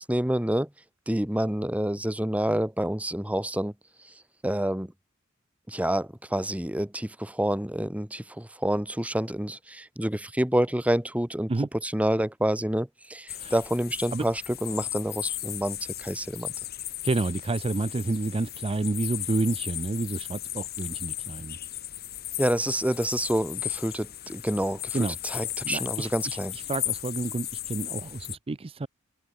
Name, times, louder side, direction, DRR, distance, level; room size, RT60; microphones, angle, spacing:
voice 1, 0.1-0.7 1.1-3.7 4.4-4.9 5.7-11.5 11.8-16.5 22.4-26.5, right 1 dB, 5° right, 1.3 m, -28 dB
sound 1, 13.3-28.3, left 13 dB, 50° left, 2.8 m, -36 dB
voice 2, 17.0-21.6 24.9-28.9, right 3 dB, 25° right, 0.5 m, -30 dB
open air
head